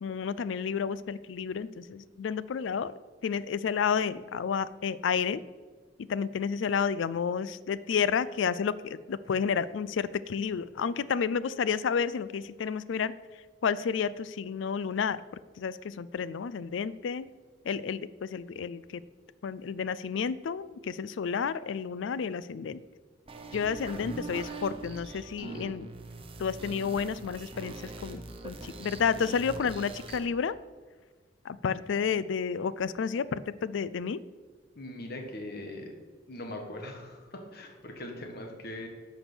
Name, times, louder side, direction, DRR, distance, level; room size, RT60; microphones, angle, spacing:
voice 1, 0.0-5.4 6.1-13.1 13.6-15.2 15.6-17.3 17.6-19.0 19.4-22.8 23.5-25.9 26.4-30.6 31.4-34.2, left 6 dB, 75° left, 17 dB, 0.4 m, -31 dB
sound 1, 23.3-30.2, right 3 dB, 30° right, 0.9 m, -42 dB
voice 2, 34.7-35.9 36.3-38.9, left 1 dB, 55° left, 3 dB, 1.3 m, -41 dB
10.5 x 6.2 x 6.1 m, 1.5 s
head